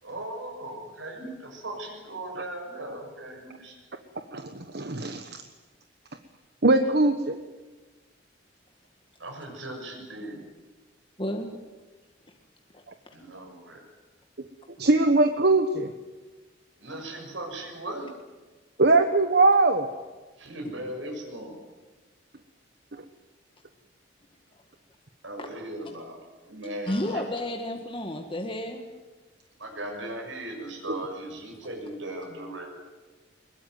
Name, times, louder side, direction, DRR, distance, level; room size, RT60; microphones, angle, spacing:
voice 1, 0.0-3.8 9.2-10.4 13.1-13.8 16.8-18.1 20.4-21.5 25.2-27.2 29.6-32.7, right 1 dB, 85° right, 1 dB, 6.7 m, -38 dB
voice 2, 4.3-5.3 6.6-7.4 14.8-15.9 18.8-19.9, right 2 dB, 55° right, 7 dB, 1.2 m, -21 dB
voice 3, 11.2-11.5 12.7-13.1 25.4-25.5 26.9-28.9, left 1 dB, 25° left, 3 dB, 1.8 m, -32 dB
21.5 x 21.5 x 9.4 m, 1.2 s
head